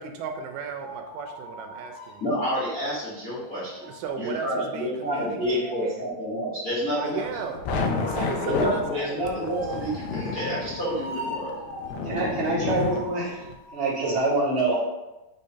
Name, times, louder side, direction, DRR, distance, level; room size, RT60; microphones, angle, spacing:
voice 1, 0.0-2.3 3.9-6.0 6.9-9.2, right 6 dB, 90° right, 5 dB, 2.2 m, -35 dB
sound 1, 0.8-2.5 3.7-14.2, equal, 70° left, 1.6 m, -41 dB
voice 2, 2.2-3.9 4.2-7.2 8.4-11.5, equal, 50° left, -9 dB, 1.1 m, -29 dB
sound 2, 7.2-13.5, left 4 dB, 85° left, 1.6 m, -31 dB
voice 3, 12.0-13.4 13.7-14.8, right 2 dB, 45° right, -9 dB, 0.8 m, -25 dB
5.5 x 3.4 x 2.7 m, 1.0 s
omnidirectional pair, 3.8 m